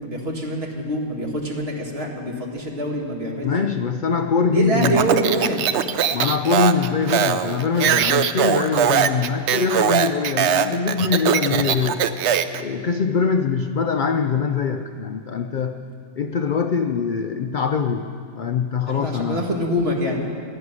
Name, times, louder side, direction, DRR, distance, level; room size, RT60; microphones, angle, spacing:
voice 1, 0.0-3.5 4.5-5.9 18.9-20.3, equal, 45° right, 0 dB, 2.2 m, -25 dB
voice 2, 3.4-5.0 6.1-12.0 12.6-15.8 16.2-18.1 18.3-19.4, left 5 dB, 75° left, 6 dB, 0.4 m, -23 dB
Speech, 4.8-12.6, right 9 dB, 60° right, 0.8 m, -21 dB
12.5 x 11.5 x 9.7 m, 2.5 s
omnidirectional pair, 1.5 m